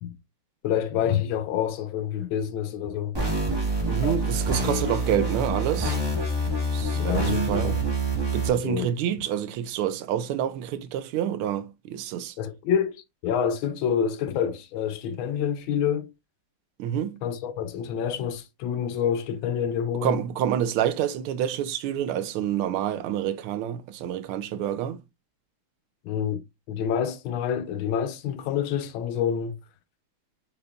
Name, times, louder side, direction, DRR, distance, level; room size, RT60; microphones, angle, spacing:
voice 1, 0.6-3.2 4.0-4.2 6.9-7.8 8.5-8.9 12.4-16.1 17.2-20.2 26.0-26.4 26.7-29.6, left 8 dB, 75° left, 1.3 m, -27 dB
sound 1, 3.1-8.5, right 2 dB, 15° right, 1.0 m, -26 dB
voice 2, 3.8-6.0 6.7-7.8 8.3-12.3 16.8-17.2 20.0-25.0, right 10 dB, 85° right, 1.5 m, -28 dB
5.8 x 3.5 x 2.2 m
omnidirectional pair, 2.3 m